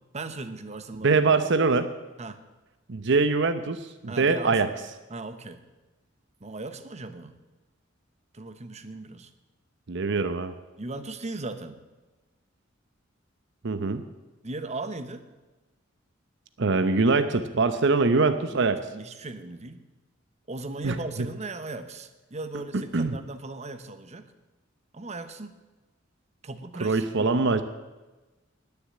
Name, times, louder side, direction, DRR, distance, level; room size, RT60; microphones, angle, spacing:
voice 1, 0.1-1.3 2.2-2.4 4.1-4.7 5.1-5.6 6.4-7.4 8.3-9.3 10.8-11.8 14.4-15.2 18.5-19.8 20.5-24.3 24.9-25.6 26.4-27.6, right 2 dB, 35° right, 10 dB, 1.0 m, -38 dB
voice 2, 1.0-1.9 2.9-4.7 9.9-10.5 13.6-14.0 16.6-18.8 20.8-21.3 22.9-23.2 26.8-27.6, right 3 dB, 65° right, 10 dB, 0.8 m, -23 dB
19.5 x 7.1 x 8.4 m, 1.2 s
head